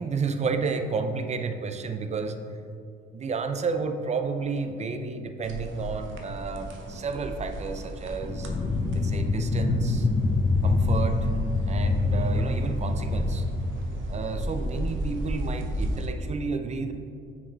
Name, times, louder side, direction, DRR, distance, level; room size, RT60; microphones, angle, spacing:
voice 1, 0.0-2.4 3.1-8.5 8.9-10.1 10.6-11.3 11.7-13.4 14.1-16.9, right 4 dB, 35° right, 7 dB, 0.5 m, -31 dB
sound 1, 5.4-16.1, right 1 dB, 75° right, 0.8 m, -35 dB
sound 2, 8.2-14.7, left 3 dB, 25° left, 0.5 m, -26 dB
6.1 x 4.8 x 3.4 m, 2.4 s
cardioid pair, 90°, 20 cm